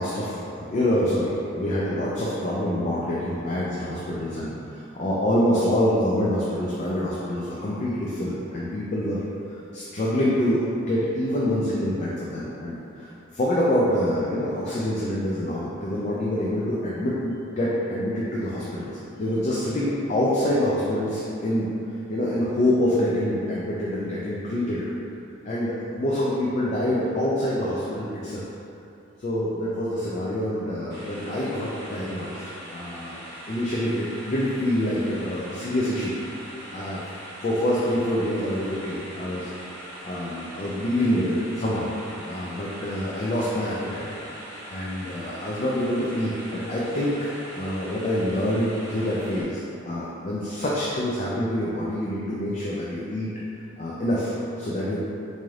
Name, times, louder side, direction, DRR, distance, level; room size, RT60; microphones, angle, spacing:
voice 1, 0.0-9.2 9.7-18.9 19.2-21.7 22.1-24.8 25.4-28.4 29.2-33.2 33.5-36.2 36.7-37.0 37.4-39.5 40.0-44.1 44.7-53.3 53.8-55.0, left 1 dB, 40° left, -6 dB, 0.4 m, -26 dB
sound 1, 30.9-49.4, equal, 50° right, 1.1 m, -41 dB
3.9 x 3.1 x 2.4 m, 2.8 s
head